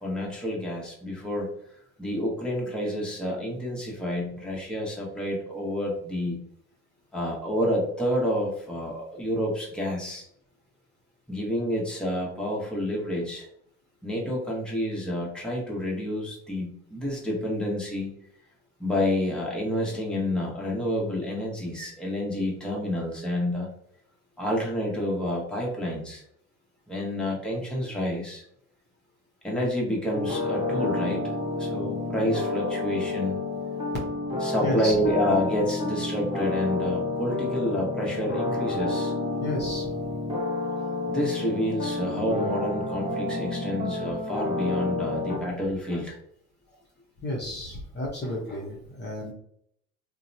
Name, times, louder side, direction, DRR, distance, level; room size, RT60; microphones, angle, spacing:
voice 1, 0.0-1.5 2.0-6.4 7.1-10.2 11.3-13.5 14.0-18.1 18.8-23.7 24.4-26.2 26.9-28.4 29.4-31.2 31.6-33.4 34.4-39.1 41.1-46.2, left 1 dB, ahead, -4 dB, 1.0 m, -29 dB
sound 1, 30.1-45.4, left 2 dB, 15° right, 1.3 m, -30 dB
voice 2, 34.6-34.9 39.4-39.9 45.0-45.1 45.9-46.0 47.2-49.3, left 1 dB, 30° left, -4 dB, 0.8 m, -32 dB
2.7 x 2.1 x 2.6 m, 0.70 s
supercardioid pair, 80°, 36 cm